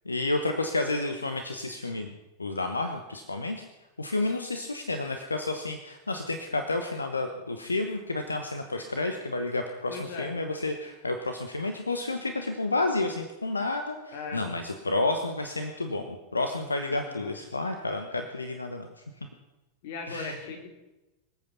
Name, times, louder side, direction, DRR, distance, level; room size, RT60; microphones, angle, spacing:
voice 1, 0.0-2.1 2.4-3.7 4.0-18.9 20.1-20.4, left 2 dB, 80° left, 6 dB, 1.1 m, -30 dB
voice 2, 9.9-10.4 14.1-14.5 16.9-17.4 19.8-20.7, left 4 dB, 50° left, 4 dB, 2.8 m, -38 dB
25.5 x 8.5 x 5.7 m, 1.1 s
figure-of-eight pair, 90°, 0 cm